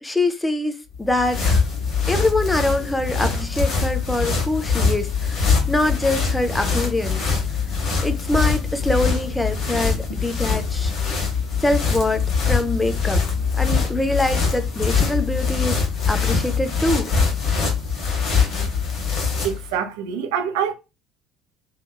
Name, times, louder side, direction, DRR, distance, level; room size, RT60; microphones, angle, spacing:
voice 1, 0.0-1.6 2.1-7.2 8.0-10.9 11.6-13.2 13.6-15.8 16.1-17.1, left 1 dB, 10° left, 0.4 m, -24 dB
sound 1, 0.9-19.7, left 5 dB, 45° left, 0.9 m, -23 dB
voice 2, 19.4-20.7, right 8 dB, 65° right, 0.4 m, -25 dB
2.8 x 2.2 x 2.3 m
figure-of-eight pair, 60°, 0 cm